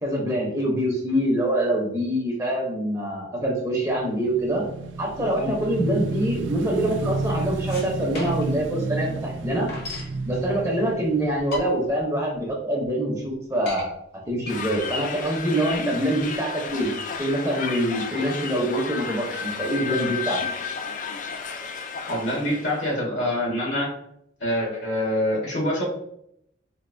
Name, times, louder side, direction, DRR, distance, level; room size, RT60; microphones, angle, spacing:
voice 1, 0.0-4.6 5.0-9.7 10.3-13.9 14.3-16.9 17.2-20.4, right 1 dB, 15° right, -2 dB, 0.7 m, -25 dB
Motorcycle / Engine, 3.8-12.3, right 3 dB, 80° right, 0.4 m, -31 dB
sound 1, 7.7-8.6 9.0-9.1 9.3-10.2 10.9-11.0 11.4-12.0 12.5-12.6 12.8-12.9 13.3-13.9 14.4-17.3, left 1 dB, 60° left, 1.0 m, -36 dB
sound 2, 14.5-22.9, left 5 dB, 45° left, 0.3 m, -32 dB
voice 2, 22.1-23.9 24.4-25.8, left 1 dB, 80° left, -4 dB, 1.5 m, -25 dB
4.3 x 2.5 x 2.6 m, 0.75 s
head